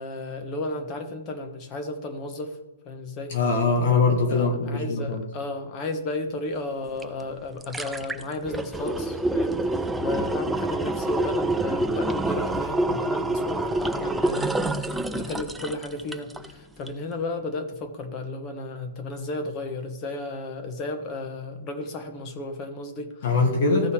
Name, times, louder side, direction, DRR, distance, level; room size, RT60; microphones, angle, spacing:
voice 1, 0.0-2.6 2.8-3.3 4.3-23.4 23.7-23.9, left 2 dB, 25° left, 6 dB, 1.3 m, -33 dB
voice 2, 3.3-5.2 23.2-23.9, left 3 dB, 45° left, 1 dB, 1.7 m, -22 dB
sound 1, 7.0-7.1 7.4-16.5 16.9-17.0, right 2 dB, 5° right, 0.4 m, -27 dB
15.0 x 5.4 x 3.3 m, 1.2 s
figure-of-eight pair, 125°, 0 cm